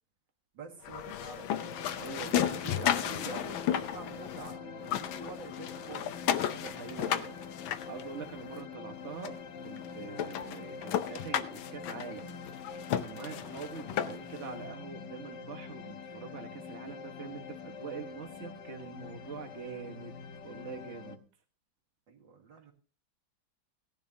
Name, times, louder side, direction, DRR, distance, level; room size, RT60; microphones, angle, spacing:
voice 1, 0.5-1.5 2.3-6.1 6.8-7.3 13.3-13.6 22.1-22.7, right 4 dB, 70° right, 0 dB, 2.8 m, -47 dB
sound 1, 0.8-4.5 4.8-8.6 9.2-9.3 9.8-9.9 10.2-14.4, left 10 dB, 90° left, 1.6 m, -34 dB
sound 2, 1.6-21.2, left 6 dB, 65° left, 1.6 m, -45 dB
voice 2, 2.0-3.3 6.5-7.3 7.9-12.3 13.0-21.2, right 6 dB, 40° right, 3 dB, 1.5 m, -44 dB
17.5 x 10.5 x 2.8 m, 0.38 s
omnidirectional pair, 2.1 m